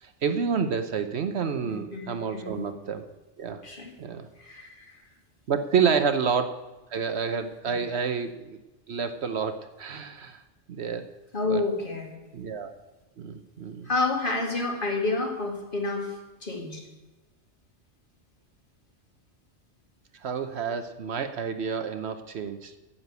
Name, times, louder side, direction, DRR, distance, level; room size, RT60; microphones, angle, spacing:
voice 1, 0.0-3.0 3.4-3.6 4.0-4.3 5.5-6.5 6.9-8.6 8.9-10.4 10.7-11.0 11.4-11.6 12.3-12.7 13.2-13.9 20.2-22.8, right 6 dB, 65° right, 9 dB, 1.0 m, -29 dB
voice 2, 1.6-2.7 3.6-3.9 4.4-5.0 5.8-5.9 11.3-12.1 13.8-16.9, left 3 dB, 45° left, 1 dB, 2.3 m, -30 dB
9.6 x 7.5 x 8.0 m, 1.1 s
omnidirectional pair, 1.2 m